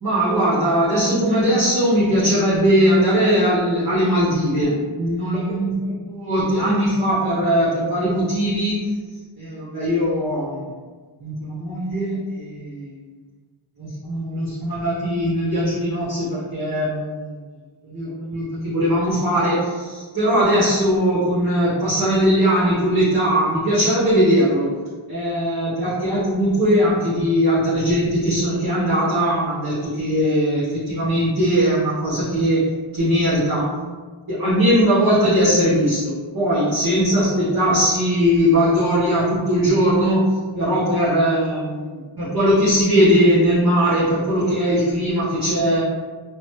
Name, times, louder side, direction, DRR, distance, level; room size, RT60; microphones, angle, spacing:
voice 1, 0.0-8.8 9.4-10.7 11.2-12.9 13.8-17.4 17.8-24.7 25.1-32.6 32.9-33.7 34.3-45.8, equal, 45° right, -11 dB, 1.1 m, -20 dB
3.0 x 2.1 x 3.1 m, 1.4 s
wide cardioid pair, 60°, 49 cm